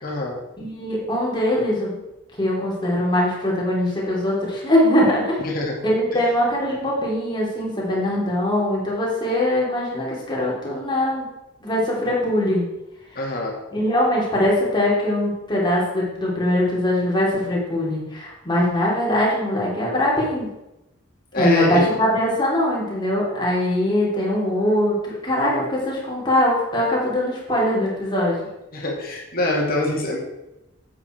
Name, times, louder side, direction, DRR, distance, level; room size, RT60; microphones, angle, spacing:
voice 1, 0.0-0.4 5.4-5.7 6.1-6.3 13.2-13.6 21.3-21.9 28.7-30.2, left 2 dB, 45° left, -1 dB, 2.4 m, -24 dB
voice 2, 0.6-2.0 2.4-5.4 5.8-11.3 11.6-12.7 13.7-20.5 21.3-28.4, left 1 dB, 20° left, -4 dB, 3.1 m, -21 dB
8.6 x 8.0 x 4.5 m, 0.94 s
head